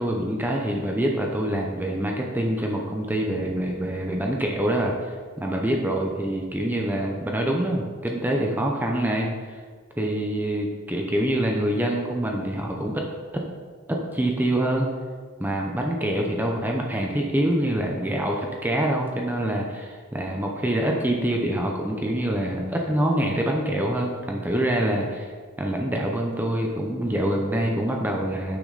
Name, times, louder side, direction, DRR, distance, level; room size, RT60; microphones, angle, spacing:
voice 1, 0.0-9.6 10.0-13.0 13.3-13.4 13.9-14.9 15.4-25.3 25.6-28.6, right 1 dB, 10° right, 0 dB, 0.8 m, -25 dB
10.0 x 6.2 x 4.1 m, 1.5 s
head